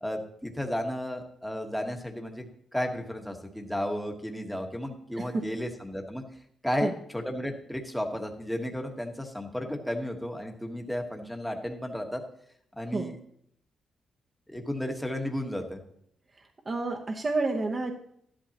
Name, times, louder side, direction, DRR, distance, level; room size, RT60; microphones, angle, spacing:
voice 1, 0.0-2.4 2.7-6.2 6.6-12.2 12.7-13.1 14.5-15.8, equal, 5° left, 3 dB, 1.3 m, -33 dB
voice 2, 16.4-17.9, right 3 dB, 25° right, 1 dB, 1.0 m, -30 dB
14.0 x 11.5 x 2.9 m, 0.70 s
wide cardioid pair, 155°, 0 cm